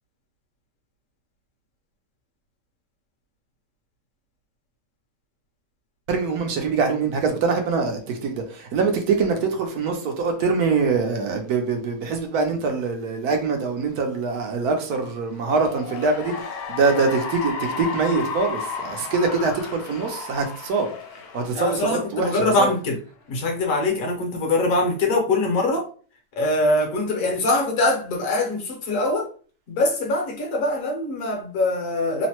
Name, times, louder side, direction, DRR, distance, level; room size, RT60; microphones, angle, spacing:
voice 1, 6.1-22.7, right 4 dB, 70° right, 1.0 m, -24 dB
Cheering / Applause, 15.4-22.1, left 5 dB, 80° left, 1.2 m, -33 dB
voice 2, 21.5-23.0 23.3-25.9 26.4-29.3 29.7-32.3, left 2 dB, 60° left, 1.1 m, -23 dB
3.1 x 2.0 x 2.8 m
omnidirectional pair, 1.8 m